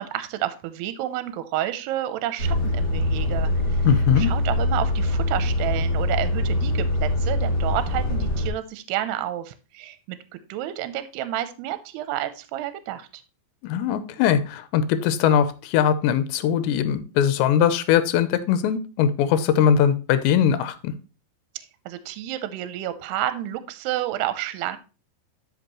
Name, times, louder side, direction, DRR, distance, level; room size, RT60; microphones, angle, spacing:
voice 1, 0.0-3.8 4.2-10.2 10.5-13.2 21.6-24.8, right 13 dB, 85° right, 11 dB, 2.6 m, -30 dB
Truck, 2.4-8.5, left 1 dB, 35° left, 1.9 m, -23 dB
voice 2, 3.8-4.3 13.6-20.9, left 9 dB, 85° left, 12 dB, 2.9 m, -21 dB
11.5 x 5.3 x 3.0 m, 0.33 s
omnidirectional pair, 5.1 m